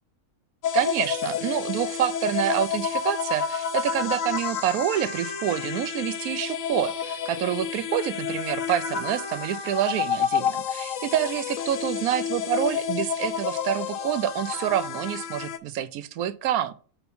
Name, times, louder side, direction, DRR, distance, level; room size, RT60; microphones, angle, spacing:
sound 1, 0.6-15.6, left 7 dB, 70° left, 1.1 m, -30 dB
voice 1, 0.7-16.7, right 11 dB, 85° right, 1.1 m, -27 dB
5.3 x 4.3 x 5.6 m
omnidirectional pair, 1.5 m